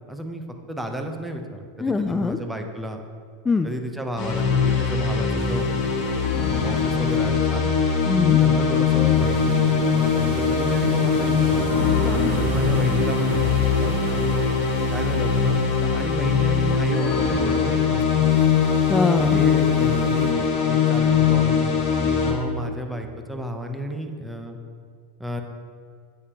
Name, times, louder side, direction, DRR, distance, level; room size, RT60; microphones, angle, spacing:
voice 1, 0.1-3.0 3.6-6.0 6.6-7.7 8.4-11.8 12.4-14.5 14.9-18.2 19.3-24.6 25.2-25.4, equal, 5° right, 4 dB, 0.8 m, -32 dB
voice 2, 1.8-2.4 3.4-3.7 8.0-8.4 12.0-12.4 18.9-19.4, left 4 dB, 15° left, 6 dB, 0.3 m, -23 dB
sound 1, 4.2-22.3, left 6 dB, 55° left, 1.7 m, -21 dB
sound 2, 5.4-20.3, right 6 dB, 75° right, 0.5 m, -35 dB
8.3 x 6.8 x 3.0 m, 2.2 s
hypercardioid pair, 110°, 0 cm